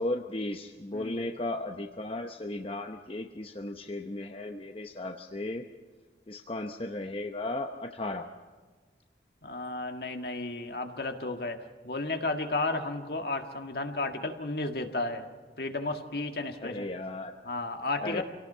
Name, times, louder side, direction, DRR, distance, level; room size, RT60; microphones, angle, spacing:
voice 1, 0.0-5.6 6.3-8.3 16.6-17.3 18.0-18.2, left 2 dB, 30° left, 5 dB, 0.8 m, -35 dB
voice 2, 9.4-15.3 15.6-16.9 17.5-18.2, left 2 dB, 60° left, 5 dB, 1.8 m, -33 dB
27.0 x 18.0 x 5.6 m, 1.4 s
head